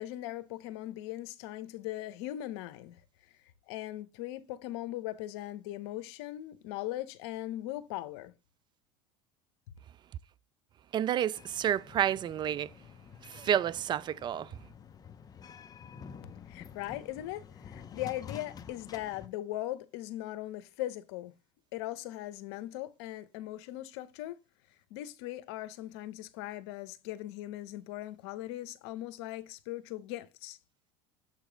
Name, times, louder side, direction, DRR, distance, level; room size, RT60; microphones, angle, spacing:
voice 1, 0.0-3.0 3.7-8.3 16.5-21.3 21.7-24.4 24.9-30.6, left 14 dB, 80° left, 0.8 m, -39 dB
voice 2, 10.9-12.7 13.2-14.6, right 10 dB, 35° right, 0.3 m, -30 dB
sound 1, 11.4-19.3, left 7 dB, 30° left, 0.7 m, -49 dB
7.4 x 3.0 x 5.1 m
supercardioid pair, 110°, 14 cm